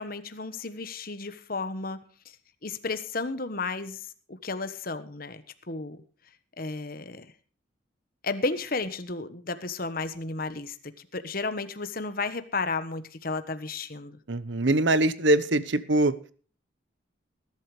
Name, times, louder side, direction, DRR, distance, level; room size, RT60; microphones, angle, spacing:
voice 1, 0.0-2.0 2.6-6.0 6.6-7.3 8.2-14.2, left 3 dB, 50° left, 12 dB, 1.2 m, -33 dB
voice 2, 14.3-16.1, right 2 dB, 70° right, 14 dB, 1.0 m, -23 dB
20.0 x 12.0 x 3.3 m, 0.39 s
head